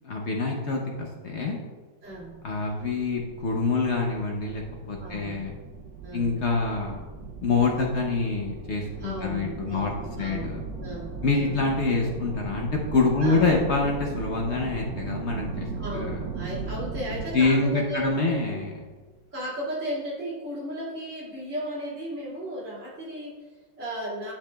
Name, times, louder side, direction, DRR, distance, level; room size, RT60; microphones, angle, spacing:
voice 1, 0.0-1.6 2.4-5.5 6.1-7.0 7.4-10.6 11.2-15.7 15.9-16.2 17.3-18.8, left 3 dB, 55° left, 0 dB, 0.7 m, -26 dB
voice 2, 2.0-2.4 5.0-5.5 6.0-6.3 9.0-11.6 13.2-13.5 15.7-18.6 19.3-24.3, equal, 40° right, -8 dB, 2.8 m, -35 dB
sound 1, 2.0-19.1, right 4 dB, 75° right, 1.1 m, -38 dB
10.5 x 5.9 x 2.3 m, 1.4 s
omnidirectional pair, 2.0 m